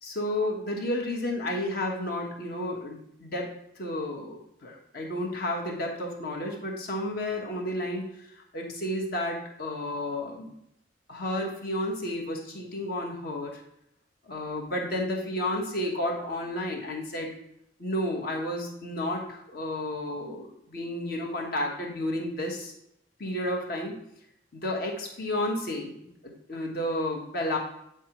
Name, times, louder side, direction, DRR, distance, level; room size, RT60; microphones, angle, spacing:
voice 1, 0.0-3.5 3.8-8.1 8.5-10.5 11.1-13.6 14.3-17.3 17.8-22.7 23.2-24.0 24.5-27.6, left 1 dB, 55° left, 0 dB, 1.3 m, -31 dB
8.2 x 4.7 x 3.0 m, 0.76 s
head